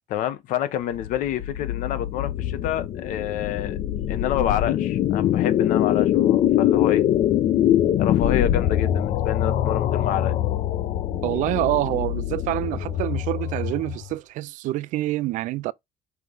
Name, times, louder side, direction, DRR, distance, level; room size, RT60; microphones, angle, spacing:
voice 1, 0.1-3.8 4.1-7.0 8.0-10.4, left 11 dB, 70° left, 1.0 m, -28 dB
sound 1, 0.9-14.1, left 11 dB, 50° left, 0.6 m, -23 dB
voice 2, 11.2-15.7, right 17 dB, 65° right, 0.4 m, -26 dB
5.9 x 3.1 x 5.4 m
cardioid pair, 175°, 14 cm